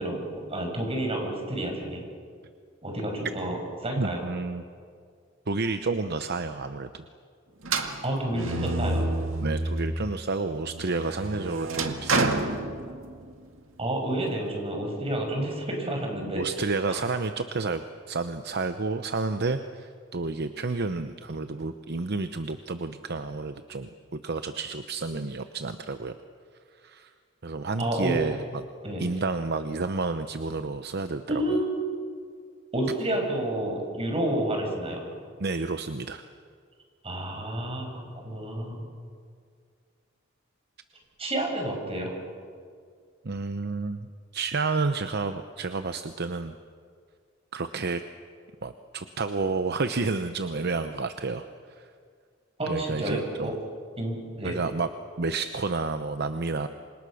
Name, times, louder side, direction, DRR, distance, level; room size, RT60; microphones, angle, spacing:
voice 1, 0.0-2.0 2.8-3.6 3.8-4.2 8.0-9.0 13.8-16.4 16.9-17.0 27.8-28.1 28.8-29.0 31.3-31.8 32.7-35.1 37.0-38.8 41.2-42.1 52.6-53.5 54.0-54.5, right 1 dB, 30° right, 1 dB, 6.3 m, -30 dB
voice 2, 4.0-4.6 5.5-7.0 9.4-12.4 16.3-26.1 26.8-27.1 27.4-28.6 29.0-31.6 35.4-36.3 43.2-44.1 44.3-46.5 47.5-48.0 48.6-51.5 51.8-51.9 52.7-53.6 54.4-54.9 55.2-56.7, right 3 dB, 55° right, 9 dB, 0.8 m, -30 dB
sound 1, 7.6-10.1 10.5-13.3, right 2 dB, 85° right, 2.1 m, -29 dB
29.0 x 26.0 x 6.4 m, 2.1 s
head